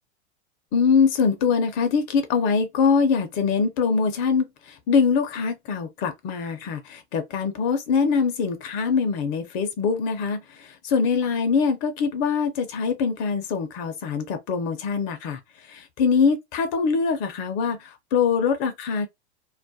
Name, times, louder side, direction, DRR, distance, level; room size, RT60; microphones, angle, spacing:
voice 1, 0.7-19.1, left 5 dB, 40° left, 0.5 m, -23 dB
2.3 x 2.1 x 2.6 m
hypercardioid pair, 110°, 34 cm